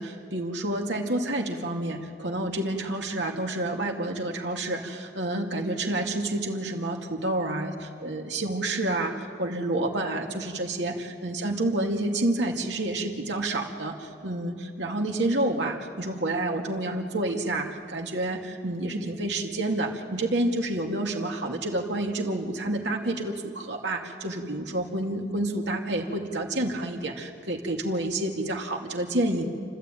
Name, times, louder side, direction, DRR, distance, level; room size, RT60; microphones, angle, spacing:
voice 1, 0.0-10.9 11.2-29.4, right 1 dB, 90° right, 1 dB, 2.4 m, -29 dB
29.5 x 13.0 x 9.1 m, 2.2 s
head